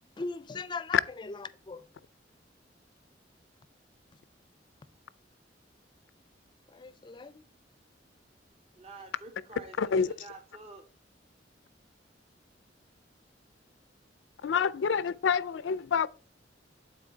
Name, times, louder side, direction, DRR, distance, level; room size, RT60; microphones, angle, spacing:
voice 1, 0.2-1.9 6.7-7.5, left 3 dB, 25° left, 0.4 m, -40 dB
voice 2, 8.8-10.9, right 3 dB, 35° right, 0.6 m, -48 dB
voice 3, 9.8-10.1 14.4-16.1, left 6 dB, 90° left, 0.4 m, -27 dB
8.8 x 4.1 x 3.9 m
head